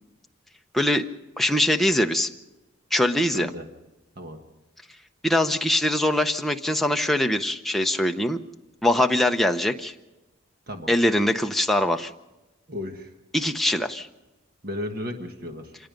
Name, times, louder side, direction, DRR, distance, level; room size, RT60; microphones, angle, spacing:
voice 1, 0.7-1.1 1.4-2.3 2.9-3.5 5.2-8.4 8.8-9.9 10.9-12.1 13.3-14.1, left 1 dB, ahead, 4 dB, 0.7 m, -22 dB
voice 2, 3.3-3.7 4.2-4.4 10.7-10.9 12.7-13.1 14.6-15.8, left 1 dB, 45° right, 4 dB, 1.4 m, -34 dB
26.5 x 19.5 x 5.2 m, 1.0 s
head